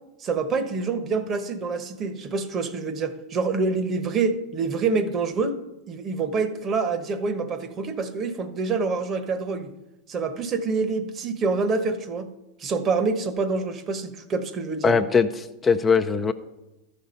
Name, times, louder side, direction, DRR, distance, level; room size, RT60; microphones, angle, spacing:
voice 1, 0.2-5.6 5.9-9.7 10.1-12.3 12.6-14.9, right 4 dB, 35° right, 11 dB, 1.0 m, -26 dB
voice 2, 14.8-16.3, left 5 dB, 20° left, 7 dB, 0.5 m, -21 dB
13.0 x 5.4 x 5.7 m, 0.96 s
hypercardioid pair, 95°, 0 cm